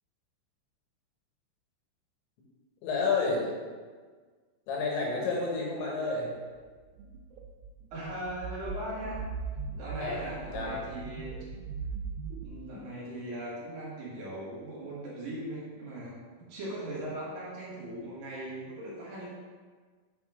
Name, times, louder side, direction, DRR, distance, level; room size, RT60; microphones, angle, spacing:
voice 1, 2.8-3.5 4.7-6.3 10.0-10.2 10.5-10.8, left 3 dB, 70° left, -2 dB, 3.4 m, -30 dB
sound 1, 6.7-12.4, right 5 dB, 90° right, 3.4 m, -40 dB
voice 2, 7.9-9.2 9.7-11.3 12.4-19.3, right 1 dB, 55° right, -7 dB, 3.0 m, -39 dB
7.6 x 5.5 x 3.6 m, 1.5 s
omnidirectional pair, 5.8 m